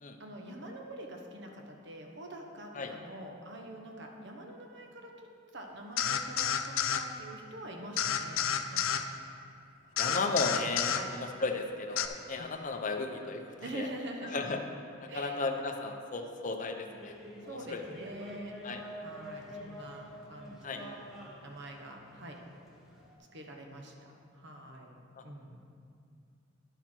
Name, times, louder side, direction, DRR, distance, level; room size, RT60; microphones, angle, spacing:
voice 1, 0.2-5.3 5.5-8.4 8.7-9.0 10.0-10.2 10.9-11.1 12.4-12.5 13.6-14.5 15.1-15.4 17.1-18.5 19.0-21.0 21.4-22.4 23.3-25.6, right 1 dB, 60° right, 2 dB, 1.0 m, -45 dB
sound 1, 6.0-7.0 8.0-9.0 10.0-11.0 12.0-12.1, left 9 dB, 80° left, 0.4 m, -30 dB
voice 2, 10.0-13.4 13.7-13.9 14.3-14.6 15.1-17.1 17.7-17.8 18.6-18.8 20.6-20.8, left 3 dB, 40° left, 4 dB, 0.7 m, -34 dB
sound 2, 16.9-23.2, equal, ahead, 1.1 m, -47 dB
10.0 x 6.4 x 4.4 m, 2.4 s
head